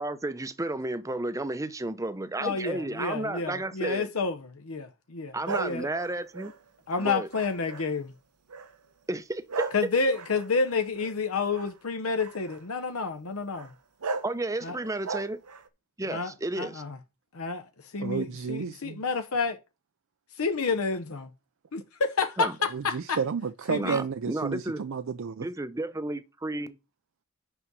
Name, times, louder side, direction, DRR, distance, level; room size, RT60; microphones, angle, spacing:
voice 1, 0.0-4.1 5.3-6.5 7.0-7.3 9.1-9.7 14.2-15.4 16.0-16.8 22.4-22.5 23.8-24.8 25.4-26.8, right 2 dB, 15° right, 0.6 m, -32 dB
voice 2, 2.4-5.9 6.9-8.1 9.7-13.7 14.6-14.8 16.1-17.0 17.3-19.6 20.4-21.3 21.7-23.2 23.7-24.0, left 4 dB, 70° left, 0.8 m, -30 dB
sound 1, 5.5-8.0 8.5-8.9 9.5-11.7 12.2-12.6 13.5-13.7 14.0-14.3 14.8-15.7, right 4 dB, 90° right, 0.9 m, -37 dB
voice 3, 18.0-19.0 22.7-25.5, right 6 dB, 60° right, 0.4 m, -31 dB
5.9 x 5.4 x 6.1 m
head